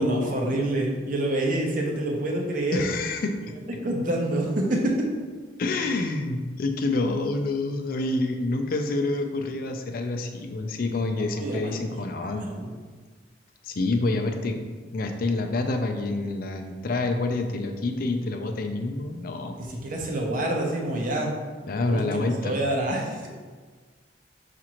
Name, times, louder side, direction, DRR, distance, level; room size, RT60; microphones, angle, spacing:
voice 1, 0.0-2.9 3.8-5.1 11.1-11.7 12.3-12.7 19.6-21.3 21.8-23.3, right 1 dB, 50° right, 0 dB, 0.7 m, -27 dB
voice 2, 2.7-3.4 5.6-12.5 13.6-14.6 14.9-19.5 21.7-22.6, left 2 dB, 50° left, 5 dB, 0.4 m, -27 dB
5.9 x 2.5 x 2.9 m, 1.5 s
head